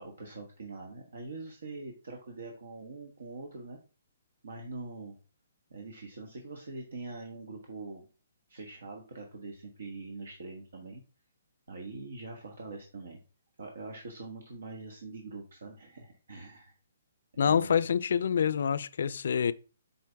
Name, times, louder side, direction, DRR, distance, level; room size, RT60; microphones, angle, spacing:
voice 1, 0.0-3.8 4.4-5.1 5.7-8.1 8.5-11.0 11.7-13.2 13.6-16.7 17.3-17.7, right 3 dB, 75° right, 1.5 m, -43 dB
voice 2, 17.4-19.5, left 7 dB, 65° left, 0.4 m, -26 dB
7.6 x 4.4 x 3.4 m
hypercardioid pair, 140°, 0 cm